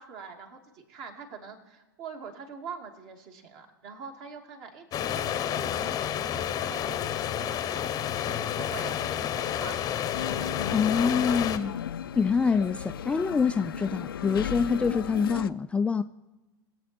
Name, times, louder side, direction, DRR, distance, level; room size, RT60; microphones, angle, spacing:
voice 1, 0.0-10.2, right 6 dB, 45° right, 3 dB, 2.5 m, -44 dB
sound 1, 4.9-11.6, left 10 dB, 30° left, 0.8 m, -30 dB
sound 2, 10.1-15.5, left 9 dB, 75° left, 0.5 m, -35 dB
voice 2, 10.7-11.7 12.2-16.0, left 5 dB, 10° left, 9 dB, 0.3 m, -25 dB
22.0 x 8.2 x 4.4 m, 1.1 s
figure-of-eight pair, 95°, 12 cm